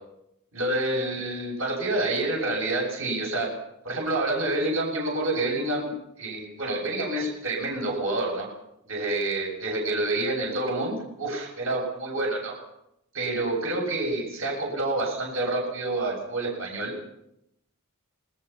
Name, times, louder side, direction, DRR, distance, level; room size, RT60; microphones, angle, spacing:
voice 1, 0.5-3.5 3.8-8.5 8.9-12.5 13.1-16.9, right 2 dB, 65° right, 0 dB, 7.7 m, -28 dB
27.5 x 20.5 x 5.9 m, 0.80 s
head